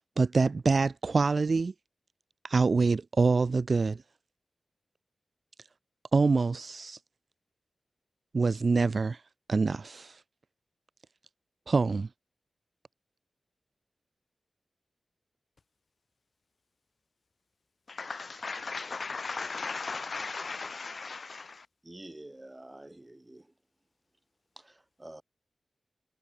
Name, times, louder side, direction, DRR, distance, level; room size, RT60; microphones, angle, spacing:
voice 1, 0.2-1.7 2.4-4.0 6.1-7.0 8.3-9.2 9.5-10.2 11.7-12.1, right 4 dB, 60° right, 0.9 m, -25 dB
voice 2, 17.9-21.5, left 4 dB, 60° left, 0.5 m, -37 dB
voice 3, 21.8-23.5 24.5-25.2, right 1 dB, 20° right, 7.0 m, -48 dB
cardioid pair, 45°, 0 cm